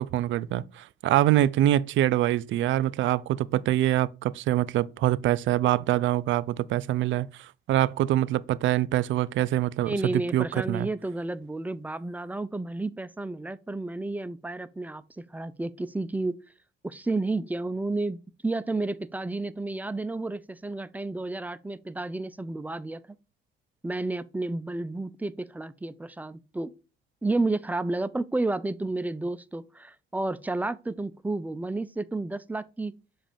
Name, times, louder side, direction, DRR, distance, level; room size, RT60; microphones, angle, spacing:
voice 1, 0.0-10.9, right 13 dB, 70° right, 0.4 m, -25 dB
voice 2, 9.9-16.4 16.8-23.0 23.8-26.7 27.2-32.9, right 2 dB, 10° right, 0.4 m, -31 dB
7.5 x 2.5 x 5.1 m
cardioid pair, 90°, 20 cm